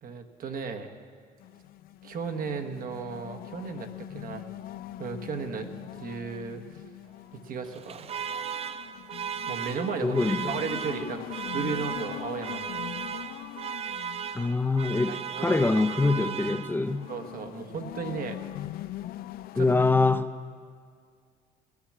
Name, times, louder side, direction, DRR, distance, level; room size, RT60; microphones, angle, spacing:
voice 1, 0.0-0.9 2.0-4.5 5.0-5.7 6.0-6.8 7.3-8.1 9.5-12.7 15.1-15.6 17.1-18.4 19.5-19.9, right 5 dB, 55° right, 6 dB, 1.3 m, -35 dB
sound 1, 1.4-20.2, left 14 dB, 60° left, 0.4 m, -42 dB
Alarm, 7.7-17.1, right 7 dB, 35° right, 0.5 m, -36 dB
voice 2, 10.0-10.6 14.3-17.1 19.6-20.3, left 3 dB, 10° left, 10 dB, 0.7 m, -24 dB
17.0 x 10.0 x 7.4 m, 2.1 s
cardioid pair, 110°, 17 cm